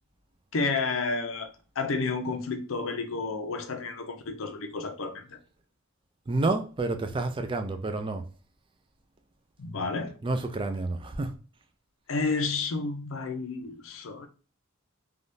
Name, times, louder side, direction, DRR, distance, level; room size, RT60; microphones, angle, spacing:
voice 1, 0.5-1.5 1.8-5.4 9.6-10.1 12.1-14.3, left 4 dB, 65° left, 0.6 m, -31 dB
voice 2, 6.3-8.2 10.2-11.3, right 2 dB, 25° right, 0.4 m, -29 dB
3.4 x 2.3 x 2.6 m
head